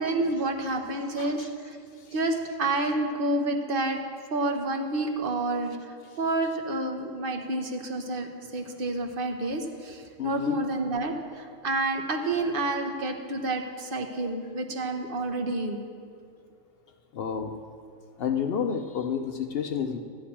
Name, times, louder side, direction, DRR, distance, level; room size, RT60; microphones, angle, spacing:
voice 1, 0.0-1.8 2.1-4.0 4.3-5.7 6.2-8.3 8.5-15.8, right 2 dB, 45° right, 5 dB, 1.0 m, -29 dB
voice 2, 1.2-1.5 10.2-10.6 17.1-17.6 18.2-20.0, left 7 dB, 60° left, 6 dB, 0.7 m, -30 dB
13.5 x 10.0 x 4.3 m, 2.3 s
omnidirectional pair, 1.4 m